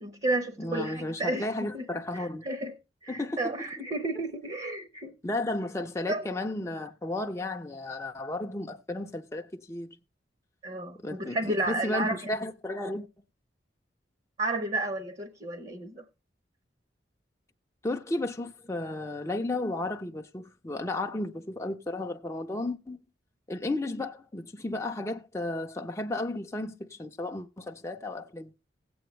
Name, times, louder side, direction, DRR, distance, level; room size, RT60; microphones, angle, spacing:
voice 1, 0.0-2.7 3.0-5.1 6.1-6.2 10.6-12.2 14.4-16.0, right 2 dB, 35° right, 0.9 m, -32 dB
voice 2, 0.6-2.5 3.1-3.5 5.2-9.9 11.0-13.1 17.8-23.0 23.5-28.5, left 2 dB, 15° left, 0.5 m, -33 dB
17.0 x 7.8 x 3.1 m
head